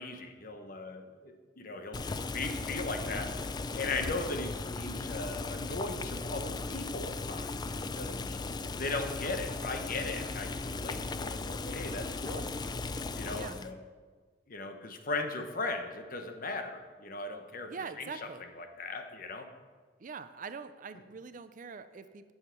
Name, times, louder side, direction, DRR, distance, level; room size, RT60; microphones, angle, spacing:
voice 1, 0.0-3.3 3.7-7.6 8.0-8.4 8.7-12.4 13.1-13.8 14.5-17.7 18.0-18.1 18.6-19.5, left 3 dB, 50° left, 6 dB, 1.0 m, -38 dB
Boiling, 1.9-13.7, left 3 dB, 20° left, 0.4 m, -37 dB
voice 2, 17.6-18.4 20.0-22.3, right 5 dB, 45° right, 12 dB, 0.5 m, -43 dB
9.7 x 7.3 x 5.9 m, 1.5 s
head